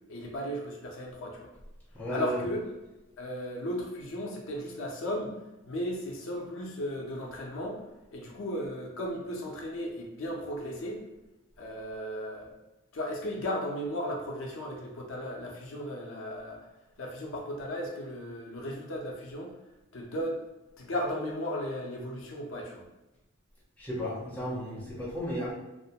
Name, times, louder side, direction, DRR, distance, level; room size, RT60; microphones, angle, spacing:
voice 1, 0.1-1.5 2.1-2.6 3.2-5.3 5.7-7.8 8.1-11.0 11.6-12.5 12.9-16.7 17.0-19.6 19.9-20.4 20.8-22.8, equal, 60° left, 0 dB, 0.5 m, -35 dB
voice 2, 1.9-2.4 23.8-25.5, equal, 5° left, -6 dB, 0.5 m, -34 dB
2.4 x 2.2 x 2.7 m, 1.0 s
head